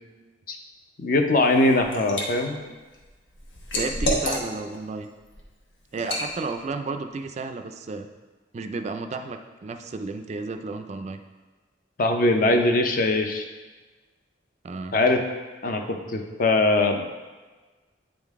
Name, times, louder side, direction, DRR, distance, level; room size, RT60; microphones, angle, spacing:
voice 1, 1.0-2.6 12.0-13.4 14.9-15.2 15.6-17.1, left 2 dB, 50° left, 5 dB, 0.6 m, -21 dB
Liquid, 1.4-2.3 2.7-4.8 5.2-5.4 6.0-6.3, equal, 75° left, 1.1 m, -29 dB
voice 2, 3.7-5.1 5.9-8.1 8.5-11.2 14.6-15.0, right 3 dB, 35° right, 7 dB, 0.3 m, -32 dB
8.8 x 3.8 x 3.5 m, 1.3 s
head